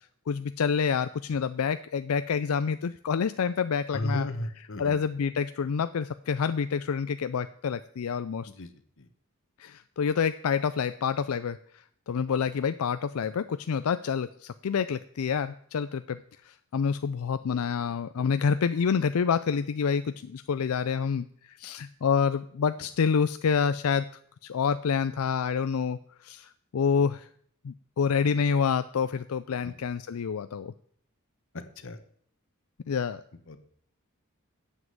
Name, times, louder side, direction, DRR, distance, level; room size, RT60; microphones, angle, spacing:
voice 1, 0.3-4.3 4.8-8.5 9.6-11.6 12.1-16.2 16.5-24.1 24.4-27.3 27.6-30.7 32.9-33.2, left 6 dB, 90° left, 12 dB, 0.4 m, -28 dB
voice 2, 3.9-5.0 8.5-8.7 9.0-9.1 29.6-29.7 31.5-32.0 33.5-33.6, left 1 dB, 65° left, 10 dB, 1.1 m, -35 dB
9.6 x 7.4 x 7.8 m, 0.62 s
head